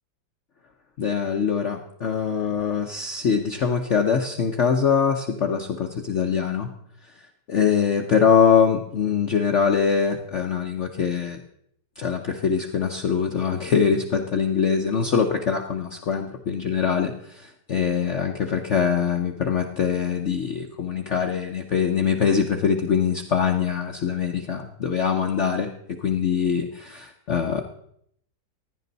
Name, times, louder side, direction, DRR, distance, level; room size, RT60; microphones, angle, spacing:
voice 1, 1.0-6.7 7.5-11.4 12.0-27.6, left 6 dB, 55° left, 3 dB, 0.9 m, -23 dB
15.5 x 10.5 x 4.0 m, 0.69 s
omnidirectional pair, 2.0 m